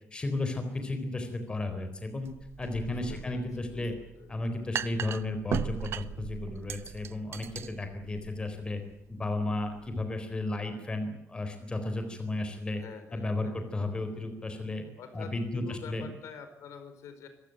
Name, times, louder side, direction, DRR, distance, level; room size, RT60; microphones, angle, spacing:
voice 1, 0.1-2.3 2.6-3.9 4.3-8.8 9.1-12.8 13.1-14.8 15.1-16.1, left 2 dB, 20° left, 7 dB, 4.0 m, -33 dB
sound 1, 2.2-10.0, right 9 dB, 55° right, 0.9 m, -39 dB
voice 2, 2.9-3.9 4.2-4.3 12.7-13.6 15.0-17.3, left 6 dB, 75° left, 9 dB, 4.5 m, -46 dB
26.0 x 15.5 x 9.1 m, 0.82 s
cardioid pair, 165°, 5 cm